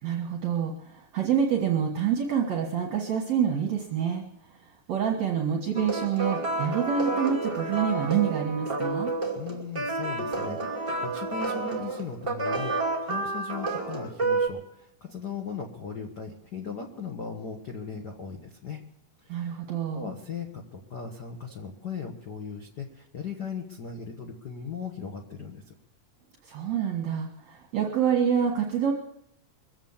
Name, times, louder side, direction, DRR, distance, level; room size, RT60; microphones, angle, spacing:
voice 1, 0.0-4.2 4.6-9.1 19.3-20.1 26.4-28.9, right 8 dB, 60° right, 1 dB, 2.4 m, -27 dB
sound 1, 5.7-14.5, right 3 dB, 10° right, 2.1 m, -30 dB
voice 2, 9.3-18.8 19.2-19.6 19.9-25.7, left 6 dB, 60° left, 3 dB, 1.0 m, -38 dB
22.5 x 8.1 x 7.2 m, 0.78 s
omnidirectional pair, 3.8 m